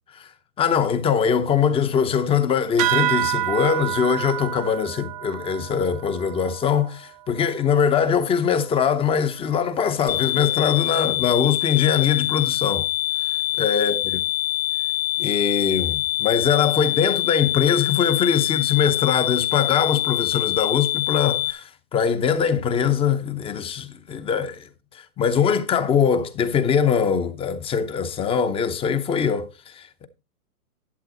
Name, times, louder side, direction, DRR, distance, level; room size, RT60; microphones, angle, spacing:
voice 1, 0.6-12.9 13.6-14.2 15.2-24.6 25.2-30.1, left 7 dB, 15° left, 0.7 m, -22 dB
sound 1, 2.8-7.7, right 15 dB, 25° right, 0.5 m, -28 dB
sound 2, 10.1-21.5, left 16 dB, 65° left, 2.2 m, -25 dB
11.0 x 7.5 x 4.1 m
hypercardioid pair, 125°, 44 cm